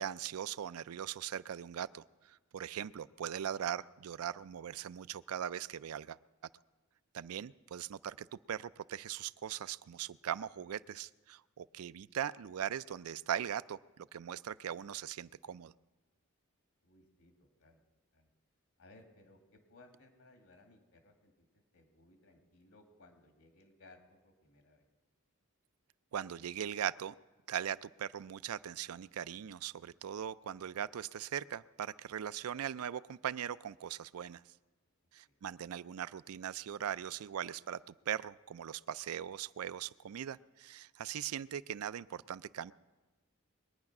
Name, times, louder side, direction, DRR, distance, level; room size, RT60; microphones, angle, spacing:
voice 1, 0.0-6.2 7.1-15.7 26.1-27.1 27.5-34.4 35.1-42.7, right 9 dB, 90° right, 17 dB, 0.4 m, -40 dB
voice 2, 16.8-17.8 18.1-18.3 18.8-24.8 35.3-35.4, left 2 dB, 80° left, 4 dB, 2.2 m, -62 dB
22.0 x 9.6 x 6.0 m, 1.2 s
head